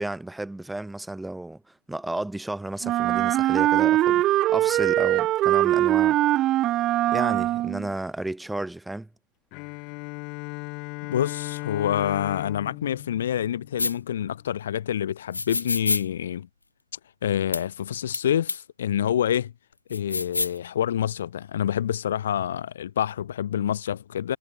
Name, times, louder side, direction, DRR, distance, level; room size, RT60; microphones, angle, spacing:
voice 1, 0.0-1.6 1.9-6.2 7.1-9.1, right 2 dB, 5° right, 5.0 m, -32 dB
Wind instrument woodwind instrument, 2.8-7.9, right 15 dB, 25° right, 1.6 m, -22 dB
Bowed string instrument, 9.5-14.2, left 31 dB, 30° left, 3.9 m, -37 dB
voice 2, 11.1-16.5 17.2-19.5 19.9-24.4, left 10 dB, 55° left, 1.9 m, -27 dB
sound 1, 13.8-13.9 15.3-16.0 17.5-17.6 18.1-18.2 18.5-18.6 19.9-20.6, left 3 dB, 90° left, 0.8 m, -27 dB
figure-of-eight pair, 130°, 0 cm